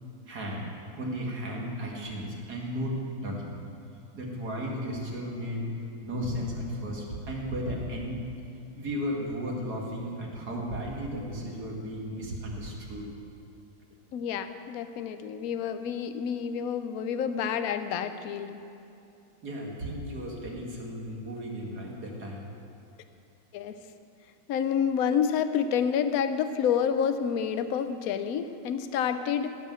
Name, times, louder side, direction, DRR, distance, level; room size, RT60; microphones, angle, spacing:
voice 1, 0.3-0.7 1.0-3.6 4.1-5.7 6.0-8.3 8.7-13.1 19.4-22.5, equal, 50° right, -2 dB, 2.4 m, -34 dB
voice 2, 14.1-18.6 23.5-23.7 24.5-29.6, left 7 dB, 80° left, 10 dB, 0.8 m, -28 dB
16.5 x 5.5 x 7.5 m, 2.7 s
omnidirectional pair, 2.2 m